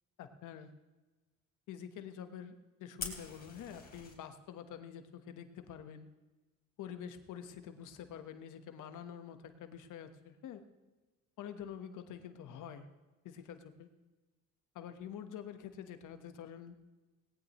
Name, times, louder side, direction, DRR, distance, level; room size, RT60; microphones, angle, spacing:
voice 1, 0.2-0.7 1.7-2.5 2.8-6.1 6.8-10.6 11.4-12.9 13.2-13.9 14.7-16.8, left 8 dB, 85° left, 8 dB, 1.3 m, -47 dB
Fire, 3.0-4.1, left 4 dB, 30° left, 3.6 m, -44 dB
19.0 x 18.0 x 3.1 m, 1.2 s
cardioid pair, 90°, 30 cm